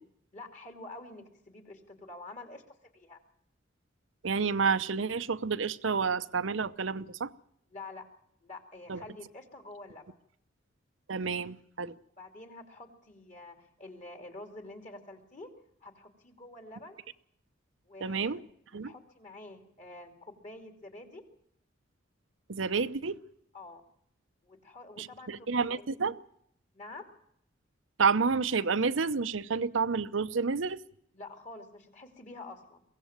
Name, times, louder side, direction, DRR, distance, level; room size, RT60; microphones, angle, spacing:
voice 1, 0.3-3.2 7.7-8.1 8.4-10.1 12.2-15.5 15.8-17.0 17.8-18.4 18.8-21.2 23.5-23.8 24.4-25.9 26.7-27.1 31.1-32.8, left 2 dB, 40° left, 5 dB, 2.6 m, -47 dB
voice 2, 4.2-7.3 8.9-9.0 11.1-11.9 18.0-18.4 18.7-18.9 22.5-23.2 25.0-26.2 28.0-30.8, right 5 dB, 85° right, 14 dB, 0.8 m, -29 dB
23.0 x 16.5 x 7.3 m, 0.71 s
head